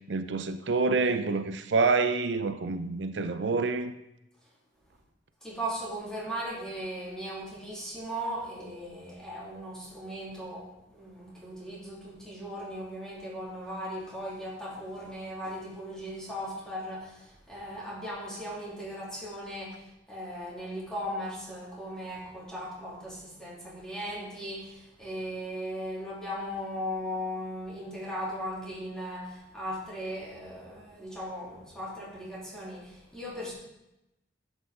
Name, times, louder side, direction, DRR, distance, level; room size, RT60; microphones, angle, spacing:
voice 1, 0.1-3.9, right 4 dB, 80° right, 0.6 m, -27 dB
voice 2, 5.4-33.5, equal, 5° left, 3.2 m, -38 dB
11.5 x 8.1 x 3.8 m
head